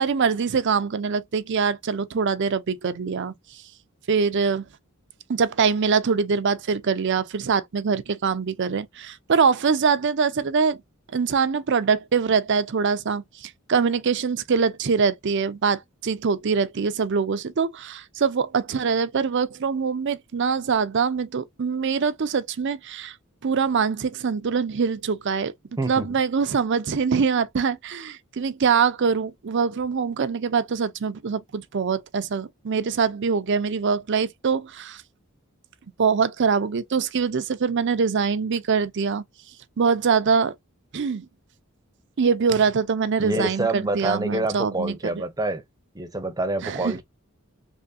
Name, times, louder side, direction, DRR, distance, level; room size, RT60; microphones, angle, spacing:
voice 1, 0.0-3.6 4.1-4.6 5.3-10.8 11.1-23.1 23.4-25.5 25.9-35.0 36.0-39.2 39.8-40.5 40.9-41.3 42.2-45.2 46.6-47.0, right 5 dB, 55° right, 0.5 m, -23 dB
voice 2, 43.2-45.6 45.9-47.0, right 2 dB, 15° right, 0.7 m, -27 dB
3.5 x 3.1 x 2.6 m
head